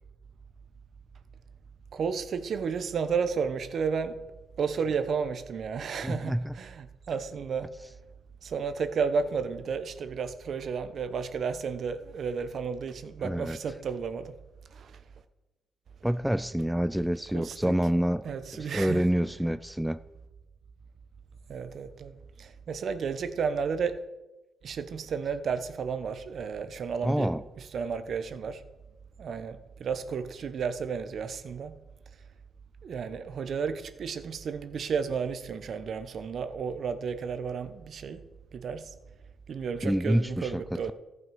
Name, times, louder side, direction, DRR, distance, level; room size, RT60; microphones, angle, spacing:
voice 1, 1.9-4.2 4.6-7.7 8.4-14.3 14.7-15.0 17.3-17.7 18.2-19.1 21.5-24.0 24.6-27.3 27.6-28.6 29.2-31.8 32.8-38.2 38.5-38.9 39.5-40.9, right 6 dB, 55° right, 10 dB, 0.9 m, -32 dB
voice 2, 6.0-6.5 13.2-13.6 16.0-18.2 18.6-20.0 27.0-27.4 39.8-40.9, equal, 5° right, 13 dB, 0.3 m, -27 dB
14.0 x 6.0 x 5.4 m, 1.1 s
cardioid pair, 90°, 0 cm